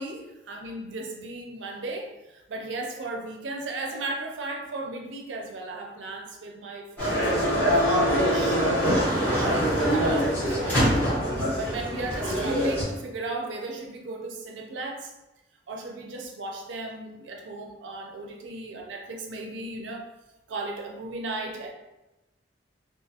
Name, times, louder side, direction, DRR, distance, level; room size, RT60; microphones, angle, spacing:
voice 1, 0.0-7.3 7.9-10.9 11.5-15.1 15.7-20.0 20.5-21.7, right 2 dB, 80° right, 1 dB, 0.5 m, -36 dB
sound 1, 7.0-12.8, equal, 10° left, 1.2 m, -24 dB
2.5 x 2.4 x 2.7 m, 1.0 s
head